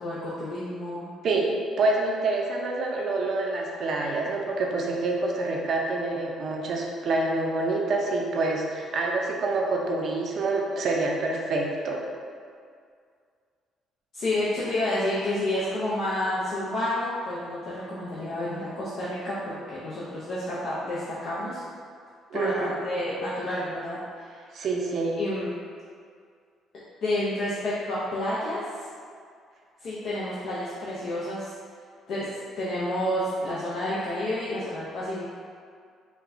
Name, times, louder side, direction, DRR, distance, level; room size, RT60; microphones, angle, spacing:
voice 1, 0.0-1.1 14.1-21.6 22.3-24.4 25.2-25.5 27.0-28.6 29.8-31.5 32.1-32.3 32.6-35.3, left 1 dB, 60° left, -9 dB, 0.6 m, -30 dB
voice 2, 1.8-12.0 22.3-22.7 24.5-25.2, right 3 dB, 55° right, -1 dB, 0.5 m, -27 dB
4.2 x 2.2 x 2.6 m, 2.1 s
cardioid pair, 115°, 0 cm